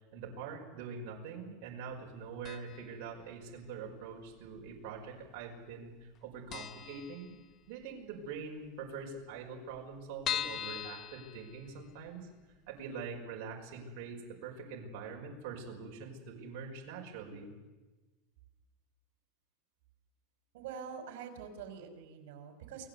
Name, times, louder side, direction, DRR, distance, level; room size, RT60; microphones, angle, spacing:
voice 1, 0.1-7.3 7.7-12.3 12.7-17.5, right 5 dB, 50° right, -1 dB, 5.2 m, -44 dB
sound 1, 2.4-3.0 3.2-3.3 4.3-5.0 5.3-5.4 5.7-5.8 6.1-6.2 6.5-7.8 8.2-8.3 8.6-8.7 8.9-9.0 9.5-12.1 12.5-12.6 13.0-13.1, left 10 dB, 30° left, 0.8 m, -40 dB
voice 2, 20.5-22.9, right 7 dB, 70° right, 7 dB, 5.3 m, -45 dB
29.0 x 19.0 x 8.3 m, 1.2 s
supercardioid pair, 165°, 0 cm